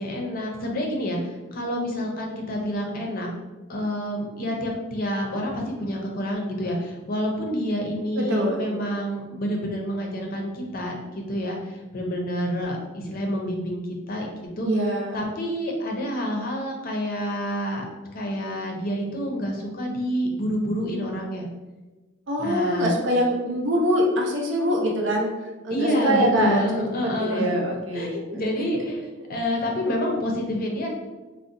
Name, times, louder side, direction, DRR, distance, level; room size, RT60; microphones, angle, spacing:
voice 1, 0.0-3.3 3.7-13.8 14.1-17.8 18.1-21.5 22.4-23.0 25.7-27.5 27.9-29.0 29.3-30.9, equal, 45° left, 0 dB, 0.5 m, -28 dB
voice 2, 8.2-9.0 14.6-15.3 22.3-25.3 25.6-28.4, equal, 65° right, 0 dB, 0.6 m, -24 dB
3.8 x 2.0 x 2.5 m, 1.2 s
head